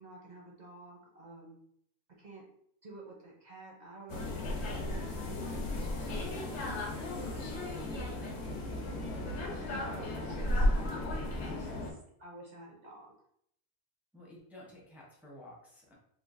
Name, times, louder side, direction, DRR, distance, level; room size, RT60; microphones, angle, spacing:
voice 1, 0.0-1.6 2.2-2.4 2.8-7.9 9.7-13.1, right 2 dB, 50° right, -2 dB, 0.6 m, -50 dB
sound 1, 4.1-11.9, left 1 dB, 75° left, 0.9 m, -34 dB
voice 2, 14.1-15.9, left 1 dB, ahead, -3 dB, 0.4 m, -52 dB
3.1 x 2.3 x 2.4 m, 0.69 s
omnidirectional pair, 1.2 m